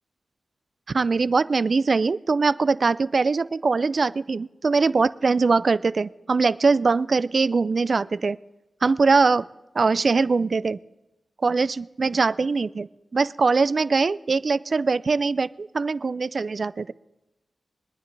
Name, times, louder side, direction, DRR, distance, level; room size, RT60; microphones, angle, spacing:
voice 1, 0.9-8.4 8.8-9.5 9.7-10.8 11.4-16.9, right 4 dB, 60° right, 17 dB, 0.4 m, -22 dB
25.0 x 9.7 x 3.3 m, 0.99 s
cardioid pair, 45°, 0 cm